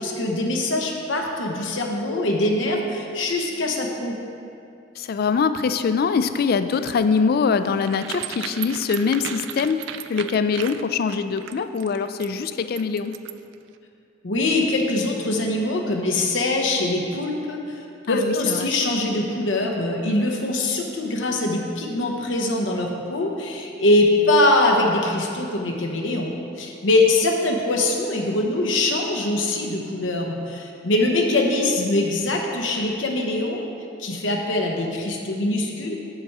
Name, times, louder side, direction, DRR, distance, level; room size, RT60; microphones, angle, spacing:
voice 1, 0.0-4.2 14.2-33.7 34.0-36.0, left 2 dB, 90° left, 1 dB, 0.9 m, -23 dB
voice 2, 5.0-9.8 10.1-13.1 18.1-18.7 31.8-32.1, left 5 dB, 55° left, 11 dB, 0.3 m, -23 dB
sound 1, 6.8-13.5, right 10 dB, 70° right, 0.3 m, -35 dB
7.5 x 6.5 x 4.7 m, 2.5 s
head